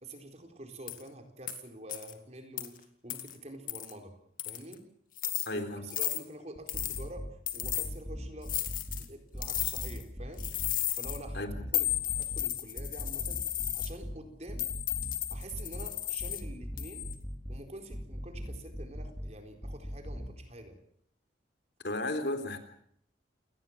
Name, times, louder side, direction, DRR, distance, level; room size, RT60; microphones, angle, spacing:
voice 1, 0.0-4.1 4.4-4.8 5.5-7.3 7.5-8.5 9.0-10.5 10.9-11.5 11.7-13.4 13.7-14.7 15.3-17.1 17.5-20.8, right 1 dB, 35° right, 5 dB, 4.3 m, -47 dB
sound 1, 0.9-1.0 1.5-1.6 1.9-2.1 2.6-2.7 3.1-3.3 3.7-3.9 4.4-4.7 5.2-5.5 5.9-6.2 6.7-7.0 7.5-7.9 8.5-9.0 9.4-10.0 10.4-11.2 11.7-13.9 14.6-16.4 16.8-17.1, left 13 dB, 50° left, 2.3 m, -34 dB
voice 2, 5.5-5.9 11.3-11.6 21.8-22.6, left 2 dB, 65° left, 8 dB, 3.6 m, -34 dB
sound 2, 6.6-7.3 7.6-9.0 9.3-10.7 11.0-12.4 12.8-14.2 14.5-15.9 16.2-17.6 17.9-19.3 19.6-20.3, equal, ahead, 4.1 m, -39 dB
28.5 x 19.0 x 7.4 m, 0.68 s
head